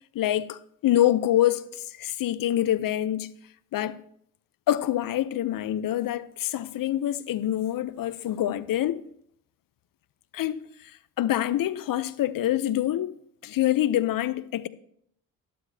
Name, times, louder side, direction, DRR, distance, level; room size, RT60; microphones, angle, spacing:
voice 1, 0.1-3.3 3.7-4.0 4.7-9.0 10.3-13.2 13.4-14.7, left 12 dB, 55° left, 0.7 m, -26 dB
12.5 x 12.0 x 2.8 m
supercardioid pair, 65°, 42 cm